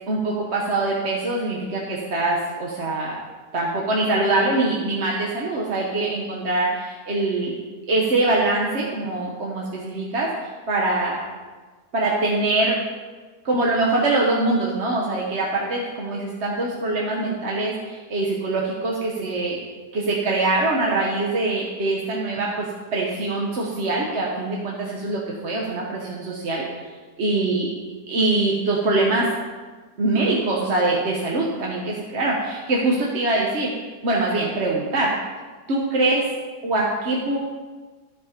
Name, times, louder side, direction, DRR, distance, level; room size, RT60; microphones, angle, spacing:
voice 1, 0.1-3.2 3.5-7.5 7.9-11.2 11.9-12.8 13.4-19.6 19.9-26.6 27.2-27.7 28.1-29.3 30.0-33.7 34.0-35.2 35.7-36.3 36.6-37.4, right 2 dB, 45° right, -3 dB, 1.2 m, -23 dB
13.5 x 4.9 x 5.1 m, 1.4 s
omnidirectional pair, 1.8 m